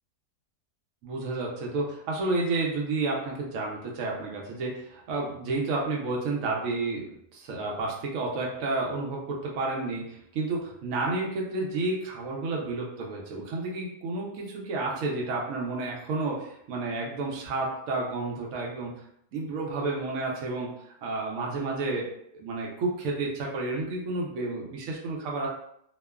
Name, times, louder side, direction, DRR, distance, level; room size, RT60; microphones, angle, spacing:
voice 1, 1.0-7.0 7.3-18.9 19.3-25.5, right 3 dB, 65° right, -2 dB, 0.9 m, -31 dB
2.9 x 2.1 x 2.3 m, 0.72 s
omnidirectional pair, 1.8 m